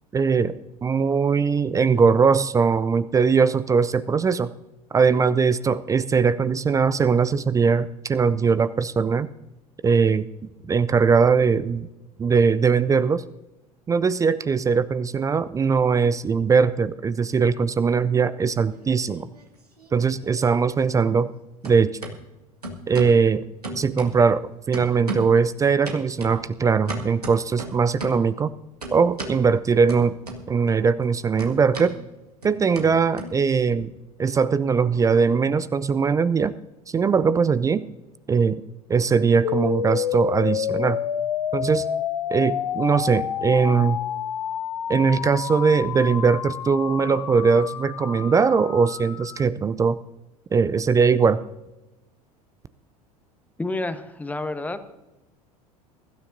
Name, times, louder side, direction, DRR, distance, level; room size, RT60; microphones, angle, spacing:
voice 1, 0.1-4.5 4.9-9.3 9.8-10.2 10.7-11.9 12.2-13.2 13.9-19.3 19.9-21.3 21.6-22.0 22.9-23.4 23.7-24.4 24.7-28.5 28.9-30.1 30.5-31.9 32.4-33.9 34.2-36.5 36.9-37.9 38.3-38.6 38.9-41.0 41.5-41.8 42.3-44.0 44.9-50.0 50.5-51.4, right 5 dB, 15° right, 15 dB, 0.4 m, -20 dB
sound 1, 18.7-19.5 19.8-21.4 21.6-22.1 22.6-23.2 23.6-24.4 24.7-25.4 25.8-28.3 28.8-29.4 29.9-30.7 31.0-33.8, right 2 dB, 85° right, 1.9 m, -36 dB
sound 2, 39.4-49.4, left 9 dB, 75° left, 0.4 m, -29 dB
voice 2, 53.6-54.9, left 2 dB, 10° left, 10 dB, 1.1 m, -29 dB
23.0 x 12.5 x 2.7 m, 1.0 s
figure-of-eight pair, 75°, 20 cm